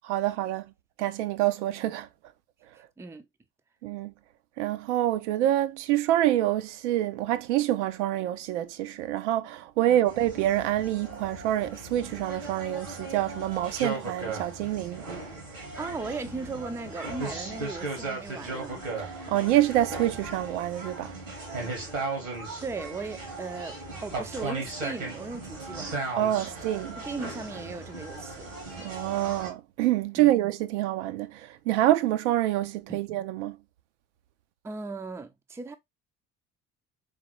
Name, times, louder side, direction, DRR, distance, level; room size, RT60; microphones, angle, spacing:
voice 1, 0.0-0.7 1.0-2.1 3.8-4.1 4.6-15.0 19.0-21.1 26.2-26.9 28.8-33.6, right 13 dB, 65° right, 0.5 m, -26 dB
sound 1, 10.1-29.5, right 3 dB, 85° right, 1.5 m, -37 dB
voice 2, 15.8-18.9 22.6-26.0 27.0-28.5 30.2-30.3 32.9-33.0 34.6-35.8, right 4 dB, 5° right, 0.4 m, -37 dB
3.7 x 3.2 x 2.9 m
figure-of-eight pair, 55°, 38 cm